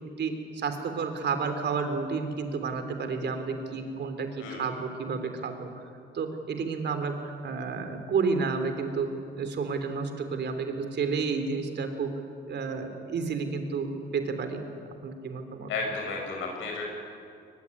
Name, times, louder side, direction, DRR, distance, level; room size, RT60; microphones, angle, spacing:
voice 1, 0.2-5.9 6.1-9.1 9.4-12.1 12.5-14.6 15.0-15.7, right 5 dB, 60° right, 7 dB, 3.4 m, -31 dB
voice 2, 15.7-16.8, left 3 dB, 85° left, 1 dB, 5.7 m, -33 dB
22.5 x 20.5 x 9.8 m, 2.5 s
cardioid pair, 90°, 20 cm